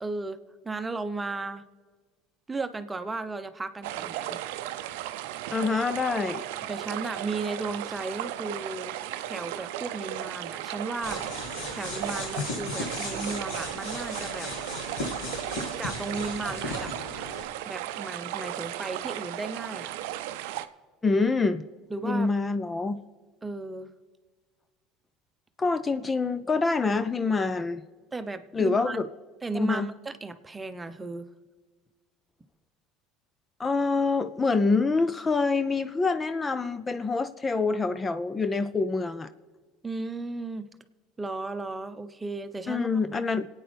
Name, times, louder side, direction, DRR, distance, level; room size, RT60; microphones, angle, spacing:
voice 1, 0.0-1.6 2.5-4.4 6.7-8.9 9.2-11.4 11.7-14.5 15.8-19.9 21.9-22.3 23.4-23.9 28.1-29.0 29.4-31.3 39.8-40.7 41.2-42.9, right 3 dB, 20° right, 0.9 m, -35 dB
sound 1, 3.8-20.7, right 13 dB, 75° right, 0.5 m, -35 dB
voice 2, 5.5-6.5 21.0-21.6 22.0-23.0 25.6-27.8 28.5-29.1 29.5-29.9 33.6-39.3 42.7-43.5, left 4 dB, 25° left, 0.6 m, -26 dB
sound 2, 11.0-17.4, left 2 dB, 70° left, 2.3 m, -36 dB
27.0 x 9.1 x 3.4 m
hypercardioid pair, 75°, 0 cm